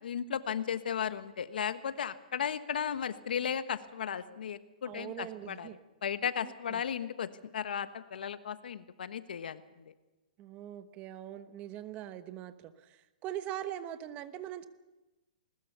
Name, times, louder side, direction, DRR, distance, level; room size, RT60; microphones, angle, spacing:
voice 1, 0.0-9.9, left 8 dB, 80° left, 12 dB, 1.3 m, -35 dB
voice 2, 4.8-5.8 6.4-6.8 10.4-14.7, right 11 dB, 25° right, 11 dB, 1.1 m, -42 dB
20.5 x 20.0 x 6.9 m, 1.1 s
hypercardioid pair, 155°, 5 cm